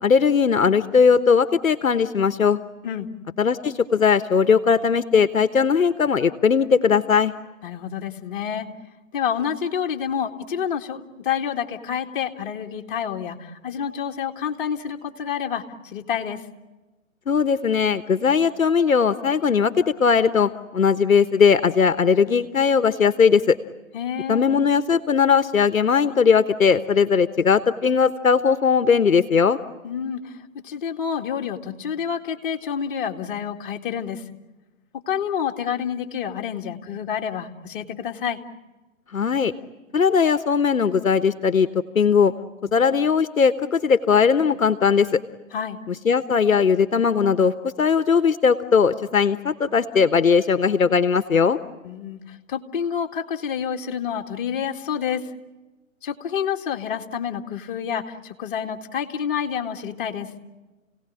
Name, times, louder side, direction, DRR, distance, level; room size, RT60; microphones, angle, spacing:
voice 1, 0.0-2.6 3.4-7.3 17.3-23.6 24.3-29.6 39.1-39.5 39.9-41.7 41.9-42.3 42.7-45.2 45.9-51.6, left 6 dB, 80° left, 12 dB, 1.2 m, -19 dB
voice 2, 7.6-8.7 9.1-16.4 23.9-24.4 29.8-34.2 34.9-38.4 45.5-45.8 51.8-55.3 56.0-60.3, left 8 dB, 40° left, 3 dB, 2.1 m, -28 dB
29.0 x 18.0 x 10.0 m, 1.2 s
figure-of-eight pair, 140°, 40 cm